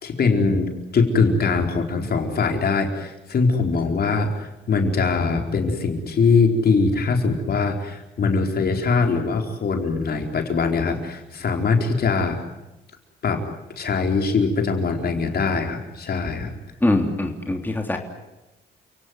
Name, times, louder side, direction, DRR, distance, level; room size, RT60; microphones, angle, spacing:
voice 1, 0.0-12.4 13.2-13.4 13.8-16.5, left 4 dB, 50° left, 3 dB, 4.4 m, -22 dB
voice 2, 16.8-18.0, left 2 dB, 10° left, 3 dB, 3.2 m, -22 dB
30.0 x 18.0 x 9.7 m, 1.0 s
cardioid pair, 90°, 20 cm